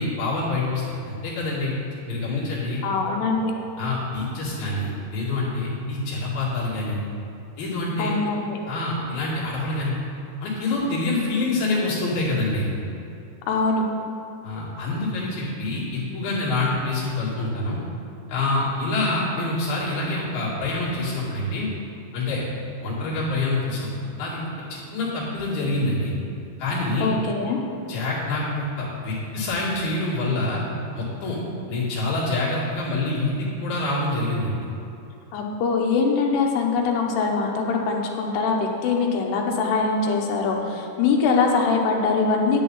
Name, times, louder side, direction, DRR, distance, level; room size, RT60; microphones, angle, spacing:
voice 1, 0.0-1.7 2.1-2.8 3.8-7.0 7.6-8.1 8.7-9.9 10.4-12.7 14.4-17.8 18.3-21.7 22.1-22.4 22.8-23.9 24.2-24.5 24.9-26.1 26.6-27.1 27.9-30.6 30.9-31.4 31.7-34.5, left 2 dB, 65° left, -8 dB, 4.2 m, -26 dB
voice 2, 2.8-3.5 8.0-8.6 13.5-13.8 27.0-27.6 35.3-42.6, left 4 dB, 85° left, 1 dB, 3.1 m, -23 dB
10.5 x 10.0 x 4.0 m, 2.8 s
omnidirectional pair, 4.7 m